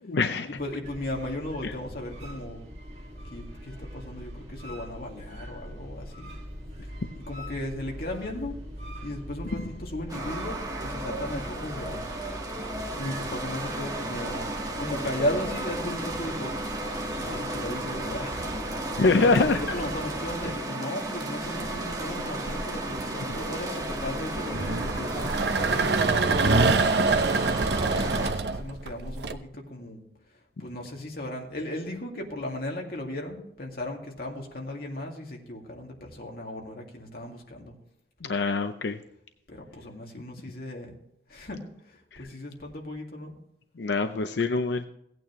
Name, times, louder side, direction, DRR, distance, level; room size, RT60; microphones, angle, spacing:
voice 1, 0.1-0.5 1.6-1.7 19.0-19.6 38.2-39.0 42.1-42.2 43.8-44.9, left 3 dB, 75° left, 8 dB, 0.6 m, -24 dB
voice 2, 0.6-2.6 3.2-6.3 7.2-8.5 9.0-12.0 12.9-14.5 14.8-16.5 17.1-27.1 27.5-30.0 30.6-37.7 39.5-40.9 41.3-43.4, left 1 dB, 55° left, 0 dB, 2.2 m, -36 dB
sound 1, 0.8-20.5, equal, 35° right, 2.3 m, -42 dB
sound 2, 10.1-28.3, right 1 dB, 20° right, 1.6 m, -34 dB
sound 3, 19.5-19.9 21.0-29.3, right 3 dB, 70° right, 0.8 m, -27 dB
16.5 x 9.1 x 3.1 m, 0.77 s
head